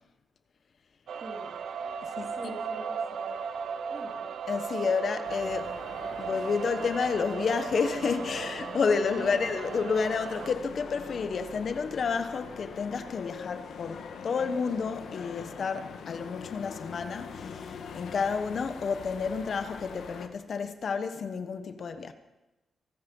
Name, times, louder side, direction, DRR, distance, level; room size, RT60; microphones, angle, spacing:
sound 1, 1.1-10.5, right 6 dB, 80° right, 0.9 m, -36 dB
voice 1, 1.2-1.6 2.2-3.5 3.9-4.2 9.1-9.5, right 2 dB, 35° right, 3.4 m, -44 dB
voice 2, 4.5-5.7 6.2-22.1, left 5 dB, 55° left, 1.2 m, -30 dB
sound 2, 5.2-20.3, left 6 dB, 85° left, 1.5 m, -43 dB
23.5 x 9.8 x 5.5 m
cardioid pair, 95°, 0 cm